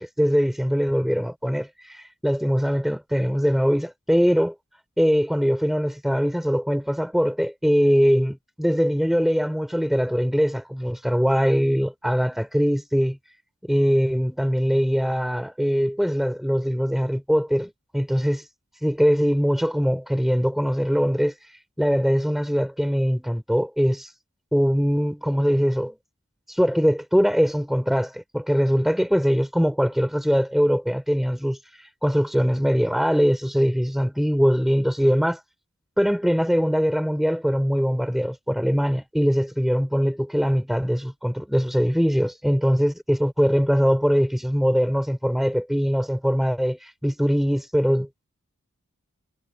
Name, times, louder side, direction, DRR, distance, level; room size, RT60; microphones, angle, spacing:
voice 1, 0.0-4.5 5.0-13.2 13.6-18.4 18.8-21.3 21.8-24.1 24.5-25.9 26.5-31.6 32.0-35.4 36.0-48.3, equal, ahead, 4.7 m, -22 dB
head